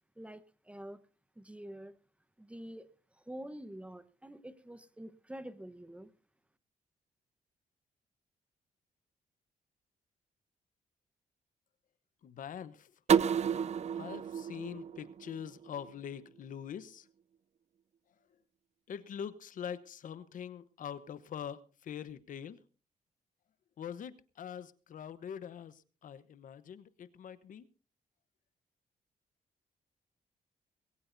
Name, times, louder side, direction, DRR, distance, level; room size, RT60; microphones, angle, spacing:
voice 1, 0.2-1.0 1.4-2.0 2.4-2.9 3.2-6.1, right 1 dB, 10° right, 1.1 m, -47 dB
voice 2, 12.2-12.9 13.9-17.1 18.9-22.6 23.8-27.7, left 8 dB, 70° left, 1.0 m, -44 dB
sound 1, 13.1-15.9, right 7 dB, 50° right, 0.6 m, -31 dB
20.5 x 17.5 x 2.7 m
cardioid pair, 95°, 14 cm